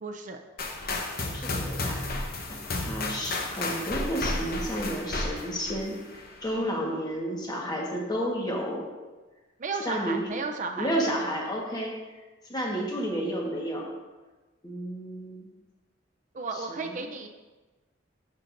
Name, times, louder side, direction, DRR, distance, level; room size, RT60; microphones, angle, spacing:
voice 1, 0.0-0.4 6.5-6.7 9.6-10.9 16.3-17.3, right 4 dB, 40° right, 5 dB, 0.5 m, -34 dB
sound 1, 0.6-6.4, left 2 dB, 50° left, 1.0 m, -32 dB
voice 2, 1.3-8.8 9.8-10.2 10.8-11.9 12.5-13.9 14.6-15.5 16.7-16.8, equal, 20° left, -1 dB, 1.3 m, -31 dB
12.0 x 6.8 x 2.6 m, 1.2 s
head